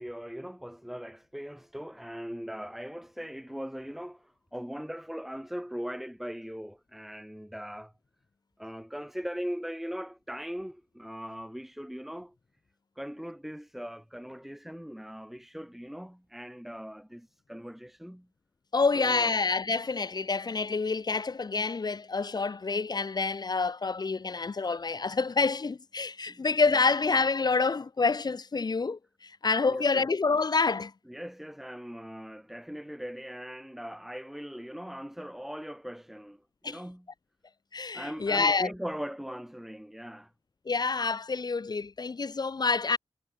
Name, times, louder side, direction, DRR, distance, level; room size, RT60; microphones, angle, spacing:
voice 1, 0.0-7.9 8.6-12.4 13.0-18.3 18.9-19.4 26.3-26.8 29.7-30.1 31.1-37.1 37.9-40.3, equal, 5° right, 7.4 m, -40 dB
voice 2, 18.7-30.9 36.6-36.8 37.7-38.7 40.7-43.0, left 4 dB, 45° left, 1.8 m, -27 dB
wide cardioid pair, 120°, 10 cm